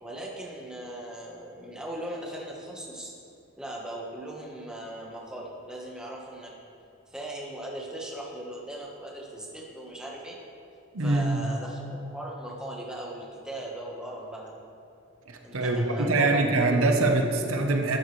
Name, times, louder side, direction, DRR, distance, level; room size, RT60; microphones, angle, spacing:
voice 1, 0.0-3.1 3.6-6.5 7.1-10.4 11.0-14.5 15.4-16.8, right 1 dB, 5° right, -3 dB, 1.1 m, -39 dB
voice 2, 10.9-11.4 15.3-18.0, right 2 dB, 90° right, 3 dB, 0.9 m, -24 dB
12.0 x 7.5 x 3.2 m, 2.6 s
head